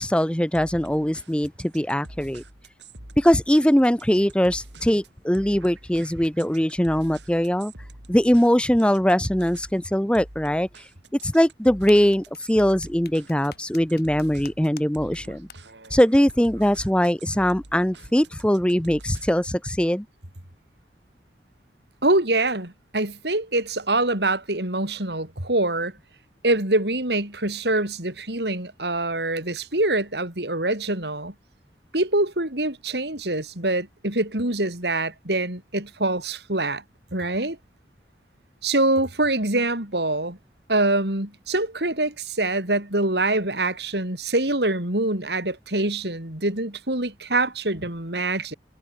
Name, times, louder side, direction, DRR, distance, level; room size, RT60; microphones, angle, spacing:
voice 1, 0.0-2.4 3.2-7.7 8.1-10.7 11.2-15.5 15.9-20.0, equal, 5° left, 0.8 m, -21 dB
sound 1, 0.5-19.6, right 1 dB, 85° right, 7.5 m, -46 dB
sound 2, 11.6-14.8 15.1-15.2 15.5-15.6, left 6 dB, 60° left, 6.7 m, -44 dB
voice 2, 22.0-25.9 26.4-31.3 31.9-36.8 37.1-37.6 38.6-40.4 40.7-48.5, right 2 dB, 70° right, 5.3 m, -24 dB
head